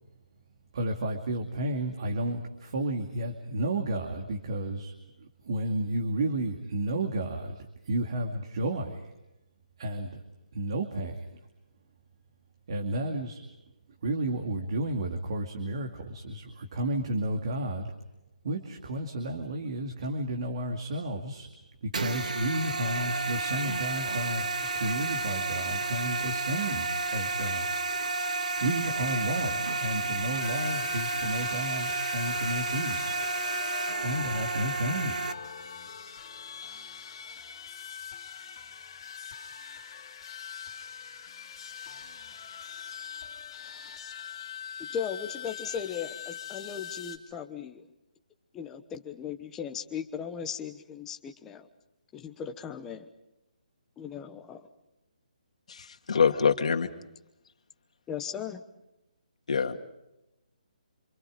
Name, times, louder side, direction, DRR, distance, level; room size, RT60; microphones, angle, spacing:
voice 1, 0.7-9.1 9.8-10.2 10.5-11.2 12.7-13.4 14.0-17.9 18.4-21.5 21.8-27.7 28.6-33.2 34.0-35.2, right 1 dB, 40° right, 3 dB, 2.5 m, -32 dB
sound 1, 21.9-35.3, right 3 dB, 65° right, 1.7 m, -31 dB
sound 2, 30.4-47.2, left 7 dB, 30° left, 3.2 m, -42 dB
voice 2, 44.9-47.9 48.5-51.7 52.1-53.0 54.0-54.6 58.1-58.6, left 7 dB, 10° left, 5 dB, 1.1 m, -37 dB
voice 3, 55.7-56.9 59.5-59.8, left 6 dB, 50° left, 6 dB, 2.2 m, -25 dB
27.5 x 27.0 x 5.2 m, 0.92 s
hypercardioid pair, 175°, 4 cm